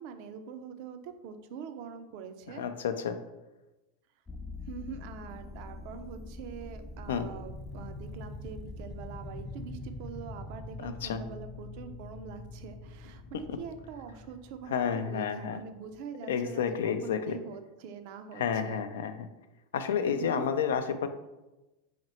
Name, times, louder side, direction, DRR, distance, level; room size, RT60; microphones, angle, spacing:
voice 1, 0.0-2.6 4.7-18.8 20.1-20.5, right 6 dB, 60° right, 8 dB, 0.4 m, -44 dB
voice 2, 2.5-3.2 7.1-7.3 10.8-11.2 13.5-13.6 14.7-15.6 16.3-17.4 18.4-19.3 19.7-21.1, left 7 dB, 85° left, 9 dB, 0.3 m, -30 dB
sound 1, 4.3-15.7, left 2 dB, 15° left, 0.4 m, -44 dB
2.9 x 2.9 x 4.2 m, 1.0 s
supercardioid pair, 120°, 0 cm